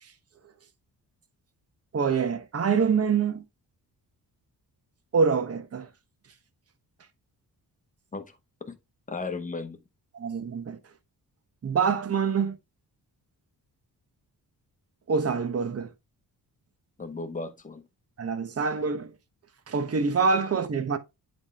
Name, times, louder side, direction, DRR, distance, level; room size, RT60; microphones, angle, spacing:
voice 1, 1.9-3.4 5.1-5.9 10.1-10.8 11.6-12.6 15.1-15.9 18.2-19.1 19.7-21.0, right 5 dB, 40° right, 0.9 m, -25 dB
voice 2, 8.1-8.8 9.1-9.8 17.0-17.9, left 3 dB, 20° left, 0.9 m, -36 dB
8.0 x 3.6 x 3.4 m
cardioid pair, 95°, 39 cm